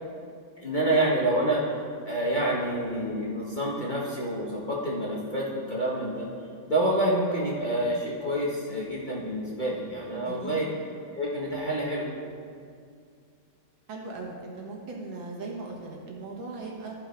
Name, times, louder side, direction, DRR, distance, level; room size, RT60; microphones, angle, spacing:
voice 1, 0.6-1.6 2.0-6.3 6.7-10.7 11.1-12.1, right 1 dB, 30° left, -6 dB, 1.1 m, -27 dB
voice 2, 10.3-10.6 13.9-17.0, right 3 dB, 80° right, -1 dB, 2.1 m, -38 dB
13.5 x 4.5 x 5.1 m, 2.3 s
omnidirectional pair, 2.1 m